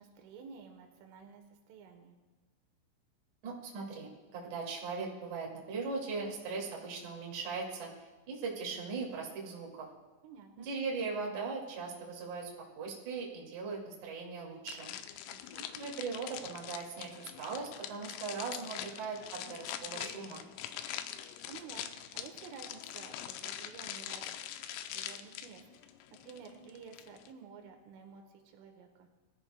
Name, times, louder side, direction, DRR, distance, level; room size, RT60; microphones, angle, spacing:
voice 1, 0.0-2.2 10.2-10.7 15.3-15.7 21.2-21.9 22.1-24.5 24.9-29.1, right 6 dB, 85° right, 4 dB, 3.5 m, -52 dB
voice 2, 3.4-9.9 10.6-12.5 12.8-14.9 15.7-20.4, right 4 dB, 50° right, -3 dB, 2.9 m, -39 dB
sound 1, 14.7-27.3, left 11 dB, 90° left, 3.3 m, -43 dB
22.0 x 13.5 x 2.2 m, 1.2 s
omnidirectional pair, 5.7 m